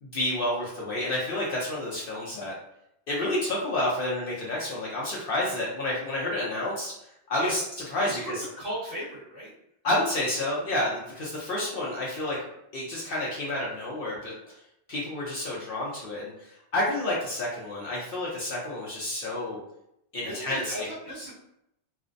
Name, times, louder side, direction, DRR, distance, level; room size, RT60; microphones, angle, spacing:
voice 1, 0.0-2.5 3.1-6.9 7.3-7.6 7.9-8.4 9.8-12.4 12.7-14.3 14.9-19.6 20.1-20.7, left 1 dB, 55° left, -5 dB, 0.7 m, -29 dB
voice 2, 8.0-9.5 20.2-21.3, equal, 40° right, -8 dB, 1.1 m, -36 dB
2.5 x 2.0 x 2.5 m, 0.79 s
omnidirectional pair, 1.2 m